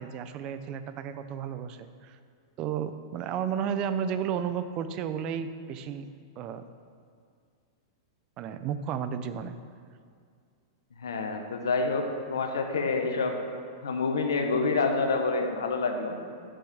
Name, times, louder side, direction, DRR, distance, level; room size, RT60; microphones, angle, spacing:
voice 1, 0.0-2.2 2.6-6.1 6.4-6.6 8.4-9.6, right 8 dB, 40° right, 11 dB, 0.5 m, -33 dB
voice 2, 11.0-13.4 13.8-16.2, left 4 dB, 90° left, 5 dB, 1.1 m, -27 dB
7.0 x 6.2 x 6.5 m, 2.2 s
hypercardioid pair, 120°, 2 cm